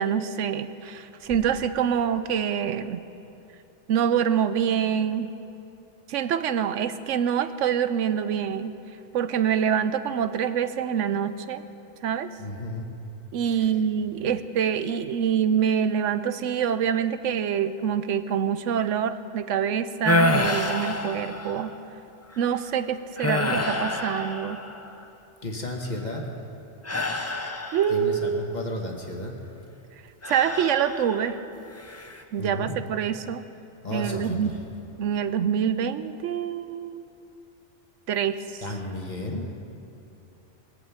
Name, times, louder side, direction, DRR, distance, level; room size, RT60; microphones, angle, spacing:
voice 1, 0.0-3.0 3.9-5.3 6.1-8.7 9.1-11.6 12.0-12.3 13.3-21.7 22.4-24.6 27.7-28.5 30.3-31.4 32.3-33.4 33.9-34.6 35.0-37.0 38.1-38.6, right 8 dB, 85° right, 12 dB, 1.0 m, -26 dB
voice 2, 12.4-12.9 13.5-13.7 25.4-26.3 27.9-29.4 32.4-32.8 33.8-34.6 38.6-39.5, left 1 dB, 35° left, 1 dB, 1.6 m, -33 dB
sound 1, 20.0-21.8 22.3-22.6 23.2-25.0 26.8-28.2 30.2-31.3 31.8-32.2, left 1 dB, 15° left, 0.6 m, -27 dB
21.0 x 8.2 x 7.3 m, 2.8 s
omnidirectional pair, 1.3 m